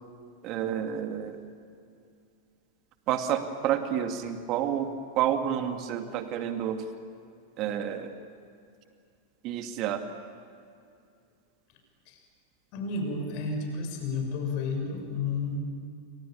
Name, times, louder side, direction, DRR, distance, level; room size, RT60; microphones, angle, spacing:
voice 1, 0.4-1.4 3.1-6.8 7.6-8.1 9.4-10.0, right 10 dB, 40° right, 7 dB, 2.3 m, -29 dB
voice 2, 12.7-15.6, left 3 dB, 45° left, 4 dB, 6.5 m, -31 dB
29.5 x 24.5 x 7.4 m, 2.5 s
figure-of-eight pair, 90°, 0 cm